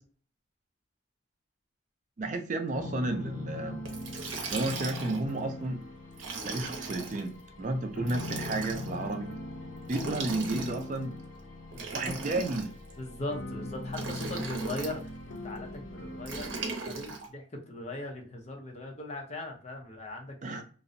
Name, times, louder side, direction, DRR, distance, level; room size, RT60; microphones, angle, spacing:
voice 1, 2.2-3.8 4.5-5.8 6.4-9.3 9.9-11.2 11.9-12.7 20.4-20.6, right 2 dB, 40° right, 5 dB, 0.3 m, -32 dB
sound 1, 2.7-16.6, left 2 dB, 85° left, 0.5 m, -41 dB
Liquid, 3.9-5.3 6.1-7.2 8.0-8.9 9.8-11.0 11.7-12.9 13.9-15.0 16.3-17.3, right 4 dB, 85° right, 0.6 m, -38 dB
voice 2, 9.9-10.7 11.7-12.2 13.0-16.5 16.9-20.6, left 2 dB, 35° left, 1 dB, 0.5 m, -40 dB
2.5 x 2.0 x 2.4 m, 0.40 s
head